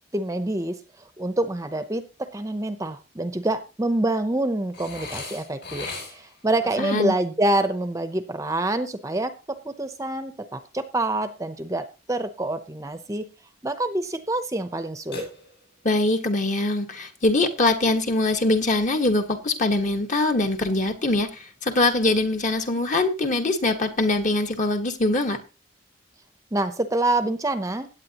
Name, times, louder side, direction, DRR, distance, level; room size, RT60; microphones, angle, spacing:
voice 1, 0.1-0.8 1.2-13.3 13.6-15.3 26.5-27.9, right 2 dB, 15° right, 10 dB, 0.7 m, -26 dB
Burping eructation, 4.7-6.4 15.1-15.9, left 2 dB, 55° left, 6.8 m, -37 dB
voice 2, 6.8-7.1 15.8-25.4, left 2 dB, 40° left, 5 dB, 1.5 m, -23 dB
16.5 x 8.9 x 2.9 m, 0.30 s
head